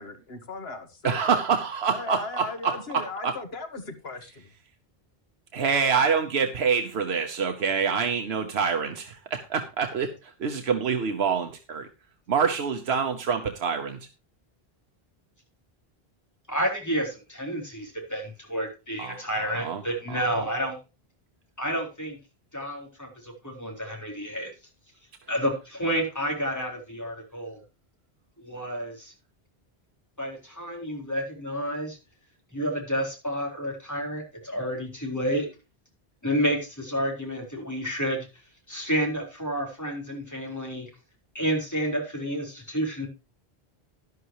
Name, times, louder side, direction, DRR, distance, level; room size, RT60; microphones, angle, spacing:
voice 1, 0.0-1.4 1.9-4.5, left 3 dB, 80° left, 7 dB, 1.8 m, -37 dB
voice 2, 1.0-3.4 5.5-11.9 12.3-14.1 19.0-19.8 20.1-20.4, right 6 dB, 85° right, 6 dB, 1.2 m, -26 dB
voice 3, 16.5-20.8 21.6-22.2 22.5-24.5 25.3-27.6 28.4-29.1 30.2-32.0 32.5-35.5 36.2-38.3 38.7-40.9 41.3-43.1, equal, 15° left, 0 dB, 4.1 m, -30 dB
12.0 x 11.5 x 3.0 m, 0.28 s
omnidirectional pair, 1.0 m